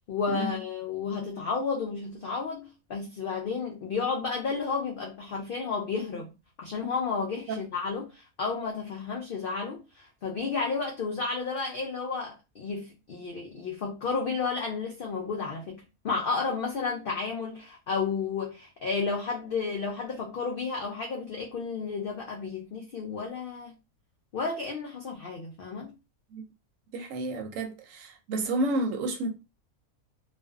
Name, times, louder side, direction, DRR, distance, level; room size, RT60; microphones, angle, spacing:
voice 1, 0.1-6.3 6.6-23.7 24.3-26.0, left 4 dB, 85° left, 0.4 m, -32 dB
voice 2, 26.9-29.3, right 2 dB, 70° right, 0.9 m, -30 dB
2.5 x 2.2 x 2.2 m
omnidirectional pair, 1.5 m